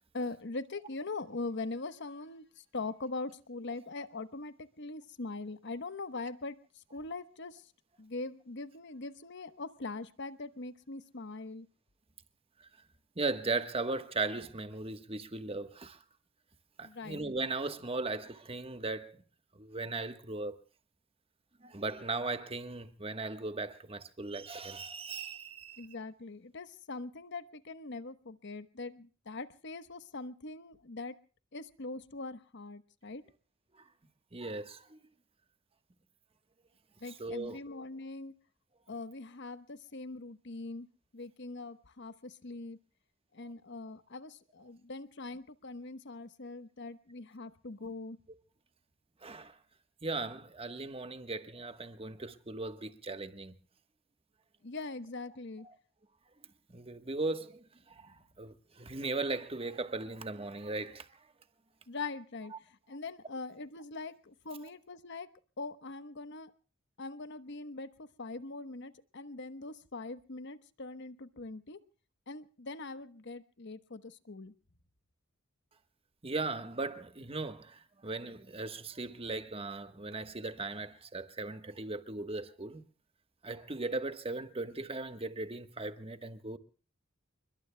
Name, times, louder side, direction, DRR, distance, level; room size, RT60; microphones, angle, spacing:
voice 1, 0.1-6.6 6.9-7.6 8.0-11.7 16.8-17.2 25.8-31.1 31.5-33.2 37.0-38.3 38.9-40.9 41.1-42.8 43.3-48.2 54.6-55.7 61.9-62.5 62.9-65.3 65.6-66.5 67.0-71.8 72.3-74.5, left 3 dB, 60° left, 1.1 m, -42 dB
voice 2, 13.2-16.0 16.8-19.2 19.5-20.6 21.6-25.9 34.3-35.0 37.2-37.6 49.2-49.5 50.0-53.5 55.6-55.7 56.7-57.6 58.0-61.1 76.2-82.8 83.4-86.6, right 3 dB, 25° right, 1.3 m, -38 dB
29.5 x 22.0 x 2.2 m
head